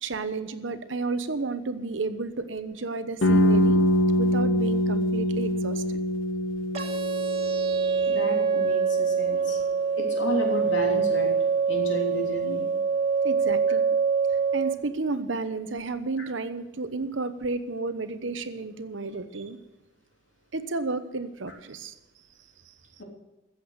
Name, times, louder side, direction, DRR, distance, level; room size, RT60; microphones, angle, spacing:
voice 1, 0.0-3.8 4.2-6.0 7.6-8.1 13.2-13.8 14.3-19.6 20.5-21.9, right 3 dB, 75° right, 10 dB, 1.0 m, -32 dB
sound 1, 3.2-9.0, equal, 90° left, 1.7 m, -24 dB
sound 2, 6.7-14.7, right 5 dB, 35° right, 1.8 m, -25 dB
voice 2, 8.1-9.6 10.0-11.3 11.7-12.7 16.2-16.3 23.0-23.1, equal, 75° left, 0 dB, 3.3 m, -32 dB
14.5 x 7.8 x 8.0 m, 1.0 s
head